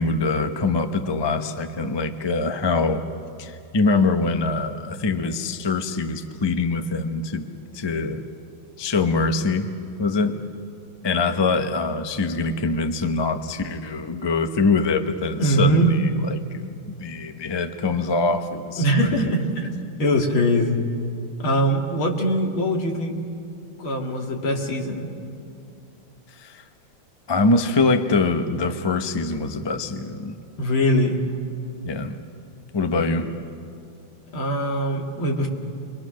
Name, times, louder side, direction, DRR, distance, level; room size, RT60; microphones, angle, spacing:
voice 1, 0.0-3.0 3.4-7.5 7.7-8.2 8.8-9.7 10.0-10.4 11.0-16.0 16.3-19.3 26.4-26.6 27.3-30.3 31.8-32.2 32.7-33.3, left 3 dB, 25° left, 7 dB, 0.5 m, -24 dB
voice 2, 15.4-15.9 18.8-20.8 21.4-23.2 23.8-25.1 30.6-31.2 33.0-33.1 34.3-35.5, equal, 80° left, 1 dB, 3.0 m, -22 dB
29.5 x 23.0 x 6.4 m, 2.5 s
omnidirectional pair, 2.2 m